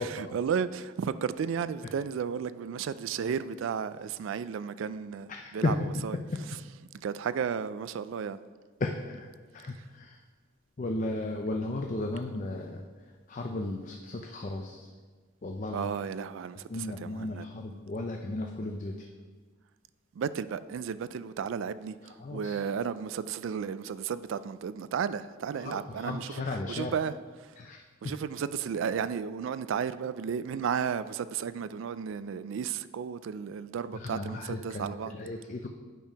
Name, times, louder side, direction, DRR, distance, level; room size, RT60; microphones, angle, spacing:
voice 1, 0.0-6.2 7.0-8.4 15.7-17.5 20.2-27.6 28.0-35.1, right 7 dB, 70° right, 0.3 m, -33 dB
voice 2, 5.3-5.8 6.5-6.6 8.8-9.3 9.5-10.2 10.8-12.8 13.3-14.9 15.4-15.9 16.7-19.1 22.2-22.6 25.6-27.0 27.6-28.2 33.9-35.7, left 2 dB, 40° left, 0.5 m, -35 dB
9.1 x 4.5 x 5.1 m
head